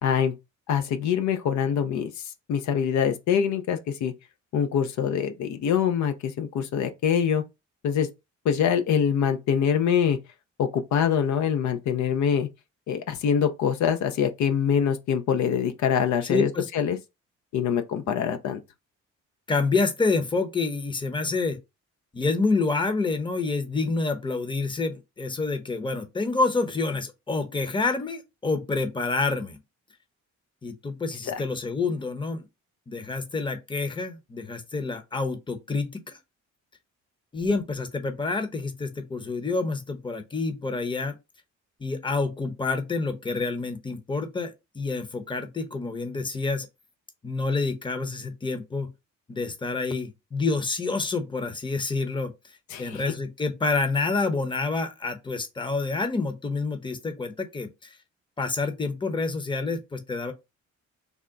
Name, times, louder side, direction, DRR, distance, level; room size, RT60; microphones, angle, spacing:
voice 1, 0.0-0.3 0.7-2.2 2.5-4.1 4.5-7.4 7.8-8.1 8.4-10.2 10.6-12.5 12.9-17.0 17.5-18.6 31.3-31.4 52.7-53.0, left 8 dB, 70° left, 0.6 m, -24 dB
voice 2, 16.3-16.6 19.5-21.6 22.1-29.6 30.6-32.4 32.9-36.2 37.3-41.1 41.8-46.7 47.2-48.9 49.3-58.0 58.4-60.3, left 3 dB, 15° left, 0.8 m, -28 dB
3.5 x 2.2 x 3.7 m
cardioid pair, 90°, 30 cm